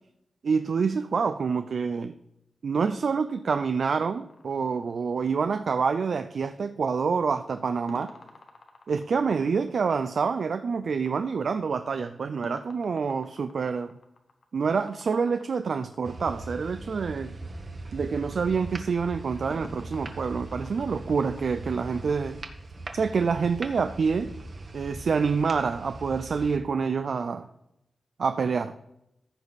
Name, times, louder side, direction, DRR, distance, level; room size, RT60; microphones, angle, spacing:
voice 1, 0.4-2.2 2.6-8.1 8.9-13.9 14.5-17.3 17.9-22.4 22.9-24.3 24.7-27.5 28.2-28.7, right 5 dB, 70° right, 0.4 m, -27 dB
sound 1, 4.3-5.7 7.9-16.5 19.5-22.1, left 3 dB, 60° left, 1.1 m, -50 dB
sound 2, 16.0-26.6, right 2 dB, 50° right, 1.1 m, -40 dB
14.5 x 5.2 x 4.1 m
wide cardioid pair, 110°, 0 cm